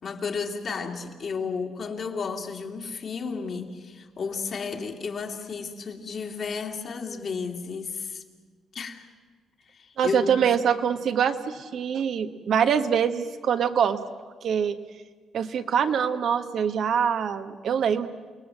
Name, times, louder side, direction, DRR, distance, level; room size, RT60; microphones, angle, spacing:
voice 1, 0.0-8.2 8.7-9.1 9.7-10.5, left 5 dB, 50° left, 2 dB, 2.6 m, -33 dB
voice 2, 10.0-14.0 14.4-14.7 15.3-18.1, right 7 dB, 65° right, 7 dB, 1.3 m, -24 dB
29.5 x 18.5 x 7.8 m, 1.5 s
cardioid pair, 90°, 0 cm